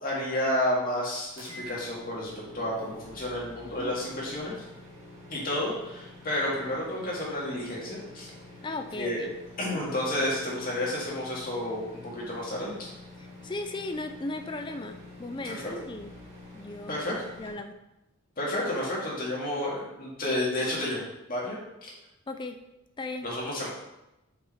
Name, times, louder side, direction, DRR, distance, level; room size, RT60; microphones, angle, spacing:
voice 1, 0.0-4.6 5.3-8.3 9.0-9.2 9.6-12.9 15.4-15.7 16.9-17.1 18.4-21.0 21.3-21.9 23.2-23.7, left 1 dB, 40° left, -5 dB, 2.0 m, -31 dB
sound 1, 1.3-17.5, left 1 dB, 30° right, 1.8 m, -47 dB
voice 2, 8.6-9.3 13.2-16.1 16.5-17.0 17.4-17.8 22.3-22.6 23.0-23.3, left 2 dB, 20° left, 7 dB, 0.4 m, -37 dB
5.5 x 4.8 x 4.4 m, 0.93 s
head